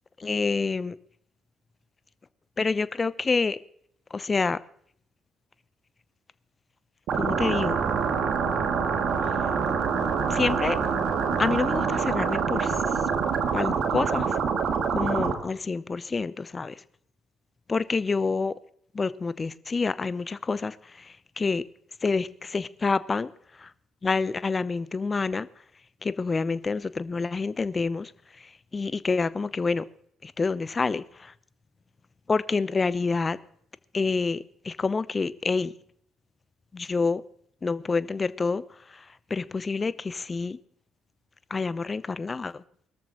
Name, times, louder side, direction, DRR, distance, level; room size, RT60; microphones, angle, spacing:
voice 1, 0.2-1.0 2.6-3.6 4.1-4.6 7.2-7.8 10.3-10.8 11.4-12.7 13.5-14.3 14.9-16.7 17.7-18.5 18.9-20.8 21.4-21.6 22.0-23.3 24.0-25.5 26.0-28.1 28.7-29.8 30.2-31.0 32.3-33.4 33.9-35.7 36.7-37.2 37.6-38.6 39.3-40.6 41.5-42.5, left 4 dB, 30° left, 0.8 m, -27 dB
sound 1, 7.1-15.3, right 6 dB, 60° right, 2.5 m, -26 dB
22.0 x 13.5 x 3.1 m
hypercardioid pair, 45°, 0 cm